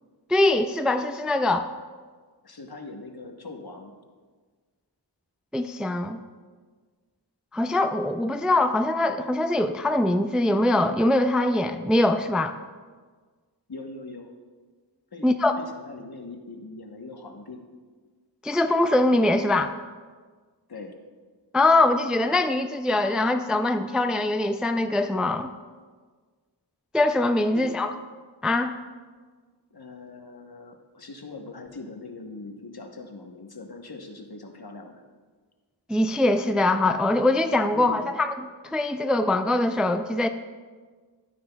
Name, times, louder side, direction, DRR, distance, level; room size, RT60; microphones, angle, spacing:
voice 1, 0.3-1.7 5.5-6.2 7.5-12.5 15.2-15.5 18.4-19.7 21.5-25.5 26.9-27.9 28.4-28.8 35.9-40.3, left 2 dB, ahead, 8 dB, 0.3 m, -23 dB
voice 2, 2.4-3.9 13.7-14.3 15.1-15.3 15.6-17.6 20.7-20.9 27.5-27.8 29.7-35.0 37.7-38.1, left 3 dB, 60° left, 3 dB, 1.0 m, -41 dB
12.5 x 9.3 x 2.3 m, 1.5 s
wide cardioid pair, 40°, 42 cm